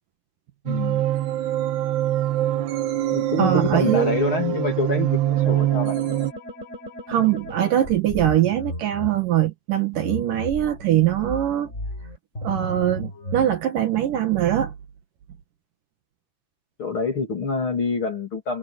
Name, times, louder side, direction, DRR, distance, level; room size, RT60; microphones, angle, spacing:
voice 1, 0.6-1.0 3.1-6.0 16.8-18.6, left 4 dB, 35° left, 3.3 m, -26 dB
sound 1, 0.7-6.3, right 12 dB, 90° right, 3.6 m, -23 dB
voice 2, 3.4-4.1 7.1-11.7 12.4-14.7, right 11 dB, 65° right, 2.7 m, -22 dB
sound 2, 5.4-9.1 9.9-13.5, left 1 dB, 15° left, 6.8 m, -35 dB
omnidirectional pair, 4.6 m